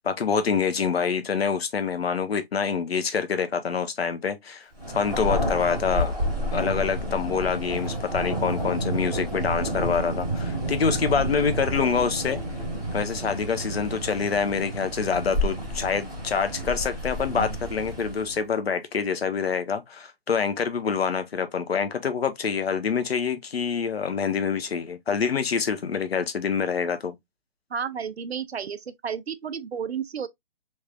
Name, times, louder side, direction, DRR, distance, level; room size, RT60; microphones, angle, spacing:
voice 1, 0.0-4.7 4.9-12.4 12.9-27.1, left 6 dB, 75° left, 0.9 m, -26 dB
Thunder, 4.8-18.4, equal, ahead, 0.4 m, -30 dB
voice 2, 27.7-30.3, right 7 dB, 90° right, 0.7 m, -32 dB
3.3 x 3.2 x 2.3 m
hypercardioid pair, 155°, 31 cm